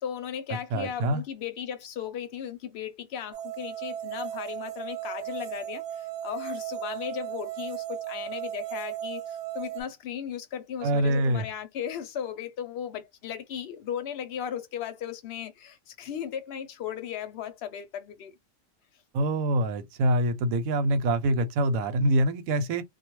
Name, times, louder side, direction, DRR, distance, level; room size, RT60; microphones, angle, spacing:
voice 1, 0.0-18.3, left 9 dB, 60° left, 0.8 m, -36 dB
voice 2, 0.7-1.2 10.8-11.4 19.1-22.8, right 1 dB, 85° right, 1.0 m, -25 dB
sound 1, 3.3-9.8, right 11 dB, 65° right, 0.8 m, -36 dB
2.3 x 2.2 x 2.9 m
omnidirectional pair, 1.4 m